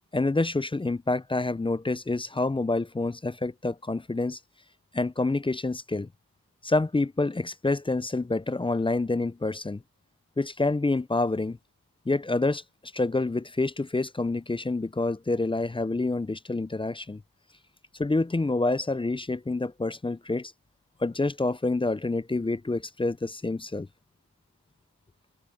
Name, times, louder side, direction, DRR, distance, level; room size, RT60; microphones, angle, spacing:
voice 1, 0.1-4.4 4.9-6.1 6.6-9.8 10.4-11.6 12.1-17.2 18.0-20.5 21.0-23.9, left 2 dB, 15° left, 0.3 m, -27 dB
wide cardioid pair, 115°, 40 cm